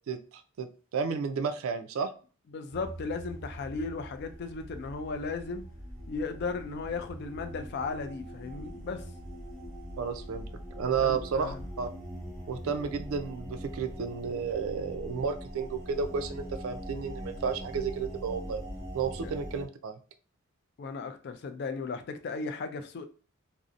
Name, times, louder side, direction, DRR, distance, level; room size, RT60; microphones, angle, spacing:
voice 1, 0.1-0.7 0.9-2.1 10.0-10.5 10.8-11.9 12.5-18.6 18.9-20.0, right 6 dB, 70° right, 0.3 m, -32 dB
voice 2, 2.5-5.7 6.1-9.0 11.0-11.6 20.8-23.0, left 4 dB, 50° left, 0.3 m, -36 dB
sound 1, 2.7-19.7, equal, 30° right, 1.1 m, -42 dB
2.6 x 2.0 x 2.4 m
head